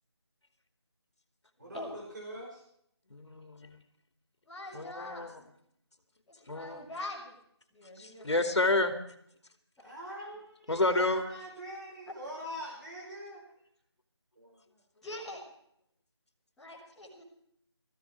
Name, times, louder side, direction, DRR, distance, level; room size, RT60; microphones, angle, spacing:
voice 1, 1.6-2.6 9.8-13.4 14.4-14.8, equal, 45° right, -2 dB, 5.3 m, -44 dB
voice 2, 3.1-3.8 4.7-5.3 6.5-6.8 8.0-8.9 10.7-11.2, left 2 dB, 75° left, 6 dB, 2.5 m, -29 dB
voice 3, 4.5-5.2 6.3-7.4 7.7-8.5 15.0-15.4 16.6-17.2, left 2 dB, ahead, -13 dB, 1.3 m, -43 dB
18.0 x 15.0 x 4.6 m, 0.70 s
figure-of-eight pair, 175°, 14 cm